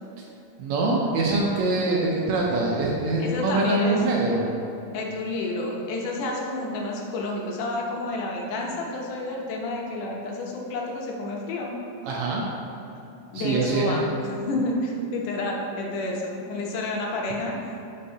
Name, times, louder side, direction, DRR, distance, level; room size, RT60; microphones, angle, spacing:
voice 1, 0.6-4.4 12.1-12.4 13.3-14.0, right 2 dB, 75° right, -3 dB, 1.7 m, -24 dB
voice 2, 3.2-4.2 4.9-11.7 13.3-17.7, left 2 dB, 75° left, -1 dB, 2.3 m, -30 dB
9.8 x 5.5 x 2.8 m, 2.8 s
omnidirectional pair, 3.9 m